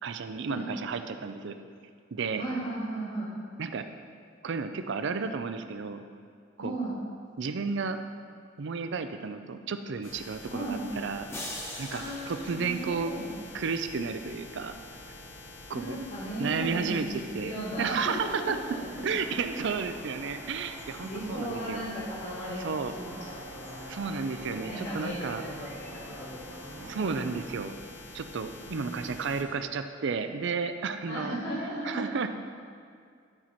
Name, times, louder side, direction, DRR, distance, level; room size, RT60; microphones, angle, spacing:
voice 1, 0.0-1.6 2.1-2.4 3.6-3.9 4.4-6.0 6.6-6.7 7.4-8.0 8.6-11.3 11.8-12.0 12.3-13.1 13.5-14.8 15.7-16.0 16.4-18.6 19.0-21.8 22.6-22.9 23.9-25.4 26.9-27.7 28.1-31.4 31.8-32.3, right 5 dB, 65° right, 9 dB, 0.5 m, -32 dB
voice 2, 2.3-3.3 6.6-7.0 10.5-10.8 11.9-13.4 15.7-19.0 21.0-24.0 24.5-27.5 28.6-29.1 31.1-32.2, right 1 dB, 60° left, -7 dB, 2.2 m, -36 dB
sound 1, 10.0-29.4, left 2 dB, 80° left, 1.1 m, -47 dB
sound 2, 11.3-13.6, left 1 dB, 15° left, 1.0 m, -42 dB
sound 3, 18.7-27.4, right 1 dB, 85° right, 1.7 m, -46 dB
12.0 x 4.5 x 4.3 m, 2.2 s
head